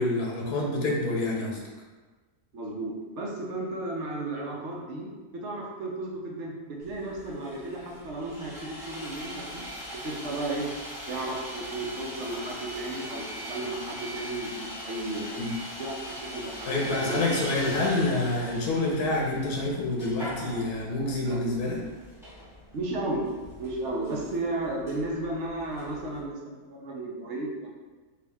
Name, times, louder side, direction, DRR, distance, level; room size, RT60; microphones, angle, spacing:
voice 1, 0.0-1.6 15.3-15.5 16.7-21.8, left 2 dB, 85° left, -2 dB, 1.4 m, -27 dB
voice 2, 2.5-9.7 10.0-10.7 11.1-15.4 15.8-17.4 21.2-21.4 22.7-23.3 23.6-27.7, right 2 dB, 60° right, -2 dB, 0.9 m, -34 dB
Sawing, 6.8-26.2, equal, ahead, 1.0 m, -41 dB
4.6 x 2.5 x 3.4 m, 1.3 s
omnidirectional pair, 1.6 m